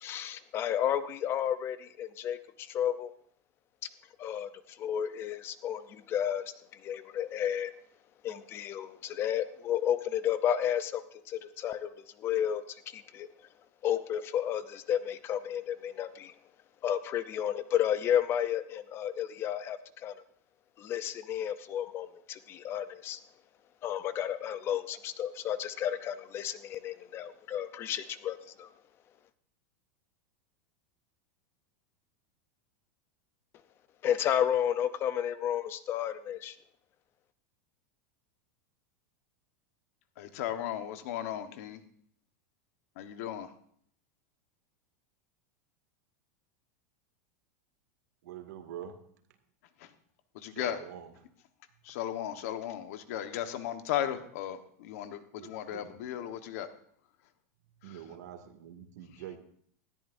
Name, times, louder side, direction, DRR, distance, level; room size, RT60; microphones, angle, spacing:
voice 1, 0.0-3.1 4.2-4.5 4.8-6.5 6.8-7.7 8.2-11.9 12.2-13.3 13.8-16.3 16.8-20.1 20.8-23.2 23.8-28.7 34.0-36.6, left 10 dB, 25° left, 14 dB, 0.6 m, -32 dB
voice 2, 40.2-41.8 43.0-43.5 50.4-50.8 51.9-56.7, left 11 dB, 60° left, 9 dB, 1.2 m, -36 dB
voice 3, 48.2-49.0 50.5-51.1 55.3-55.9 57.8-59.4, right 10 dB, 85° right, 6 dB, 2.2 m, -45 dB
19.0 x 13.5 x 2.6 m, 0.62 s
supercardioid pair, 165°, 9 cm